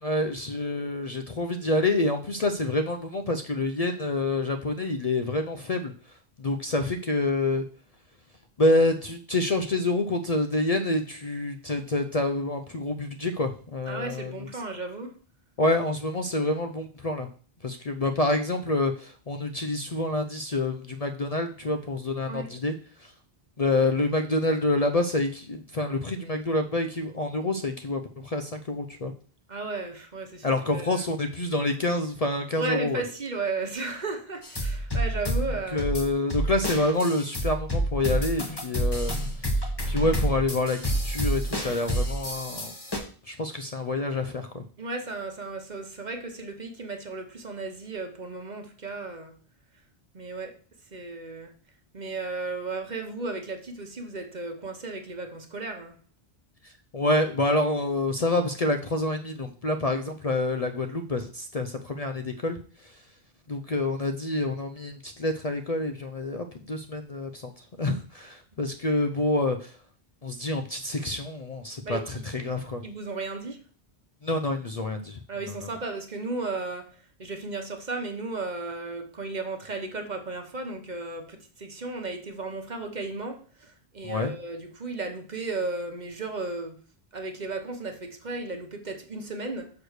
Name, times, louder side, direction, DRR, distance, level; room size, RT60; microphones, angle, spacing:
voice 1, 0.0-5.9 6.4-7.6 8.6-14.3 15.6-17.3 17.6-22.7 23.0-23.1 23.6-29.1 30.4-33.0 35.7-42.7 43.3-44.6 56.6-62.6 62.8-62.9 63.5-67.5 67.8-69.7 70.2-72.8 74.2-75.2 75.5-75.7 84.0-84.3, left 2 dB, 40° left, 6 dB, 0.6 m, -27 dB
voice 2, 13.9-15.1 22.3-22.5 29.5-31.0 32.6-35.9 44.8-49.4 50.1-50.5 50.9-51.5 51.9-55.9 68.8-69.0 71.8-72.0 72.8-73.6 75.3-76.9 77.2-86.8 87.1-89.7, right 3 dB, 45° right, 5 dB, 1.2 m, -34 dB
sound 1, 34.4-43.0, right 1 dB, 25° left, 1.4 m, -29 dB
6.4 x 4.8 x 6.5 m, 0.42 s
omnidirectional pair, 1.1 m